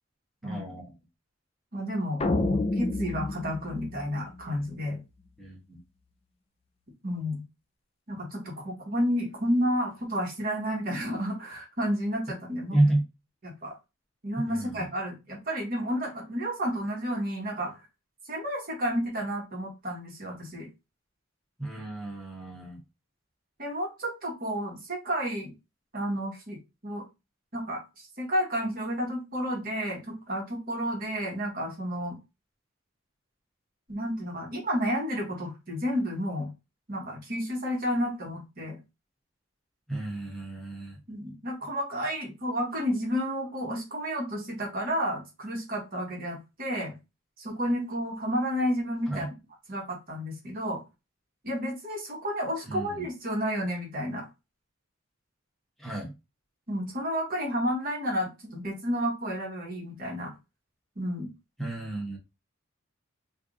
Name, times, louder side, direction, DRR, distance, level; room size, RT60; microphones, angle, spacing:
voice 1, 0.4-0.8 5.4-5.8 12.7-13.0 14.5-14.8 21.6-22.8 39.9-41.0 49.1-49.3 52.7-53.0 55.8-56.1 61.6-62.2, right 1 dB, ahead, -3 dB, 1.2 m, -30 dB
voice 2, 1.7-5.0 7.0-7.4 8.1-12.8 13.4-13.8 14.2-17.8 18.3-20.7 23.6-25.5 25.9-26.6 26.8-27.0 27.5-32.2 33.9-36.5 36.9-38.8 41.1-46.9 47.4-49.3 49.7-50.8 51.4-54.3 56.7-60.3 61.0-61.3, equal, 45° right, 0 dB, 1.3 m, -31 dB
sound 1, 2.2-4.7, left 2 dB, 30° left, 0.4 m, -29 dB
3.4 x 2.6 x 3.8 m, 0.25 s
head